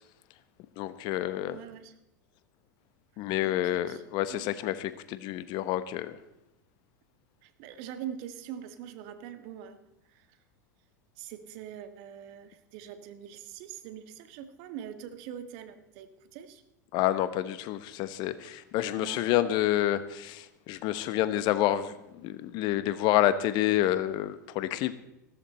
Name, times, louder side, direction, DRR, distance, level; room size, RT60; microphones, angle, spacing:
voice 1, 0.8-1.6 3.2-6.2 16.9-22.0 22.2-24.9, left 13 dB, 50° left, 14 dB, 1.1 m, -28 dB
voice 2, 1.4-1.9 3.5-4.0 4.3-4.5 7.4-9.8 10.1-10.4 11.2-16.6 18.9-19.2, right 9 dB, 55° right, 10 dB, 1.7 m, -43 dB
16.0 x 13.5 x 4.3 m, 0.90 s
hypercardioid pair, 90°, 10 cm